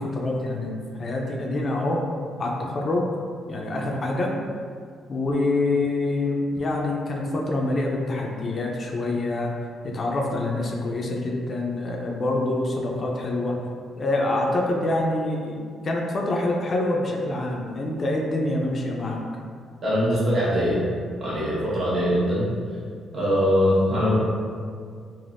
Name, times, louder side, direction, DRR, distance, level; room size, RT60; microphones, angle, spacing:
voice 1, 0.0-2.0 2.4-3.1 3.5-4.3 5.1-9.5 9.8-13.6 14.0-19.2, left 2 dB, 40° left, -1 dB, 0.4 m, -26 dB
voice 2, 19.8-20.8 21.2-22.5 23.1-24.1, equal, 50° right, -8 dB, 1.1 m, -22 dB
3.3 x 2.1 x 2.5 m, 2.1 s
cardioid pair, 90°, 0 cm